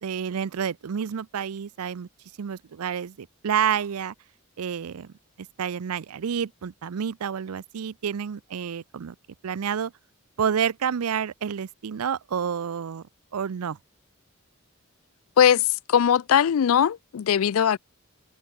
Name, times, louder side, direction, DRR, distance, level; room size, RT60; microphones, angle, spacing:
voice 1, 0.0-2.1 2.4-4.1 4.6-5.1 5.6-9.1 9.4-9.9 10.4-13.0 13.3-13.8, right 7 dB, 90° right, 0.5 m, -29 dB
voice 2, 15.4-17.8, left 8 dB, 70° left, 0.4 m, -20 dB
head